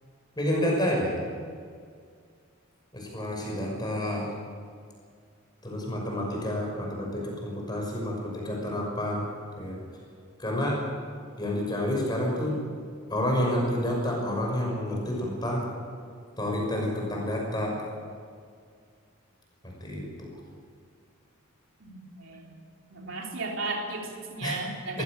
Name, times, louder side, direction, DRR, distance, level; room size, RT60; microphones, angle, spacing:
voice 1, 0.4-1.1 2.9-4.3 5.6-9.3 9.6-9.8 10.4-10.8 11.4-12.6 13.1-15.7 16.4-17.8 19.6-20.3 24.4-24.6 24.9-25.0, left 1 dB, 20° left, -1 dB, 6.1 m, -29 dB
voice 2, 21.8-22.5 22.9-25.0, right 3 dB, 60° right, 0 dB, 3.7 m, -35 dB
21.0 x 16.0 x 9.1 m, 2.1 s
head